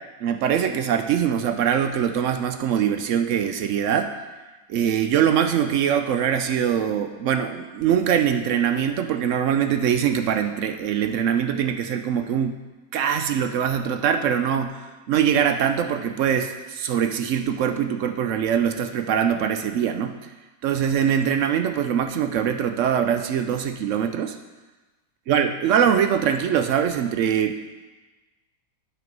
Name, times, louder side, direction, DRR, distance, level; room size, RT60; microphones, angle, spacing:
voice 1, 0.2-4.2 4.7-12.6 12.9-20.1 20.6-24.4 25.3-27.6, right 8 dB, 75° right, 7 dB, 0.7 m, -23 dB
8.6 x 6.2 x 5.3 m, 1.2 s
omnidirectional pair, 1.8 m